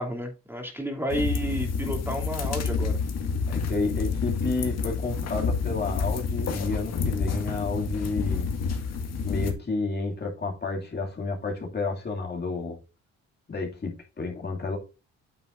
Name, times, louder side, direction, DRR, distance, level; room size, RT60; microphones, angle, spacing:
voice 1, 0.0-3.0, equal, 5° right, 2.8 m, -31 dB
sound 1, 1.1-9.5, left 5 dB, 60° left, 1.9 m, -29 dB
voice 2, 3.5-8.5 9.2-12.8 13.5-14.8, left 3 dB, 35° left, 2.5 m, -31 dB
9.2 x 7.0 x 2.6 m
cardioid pair, 90°, 30 cm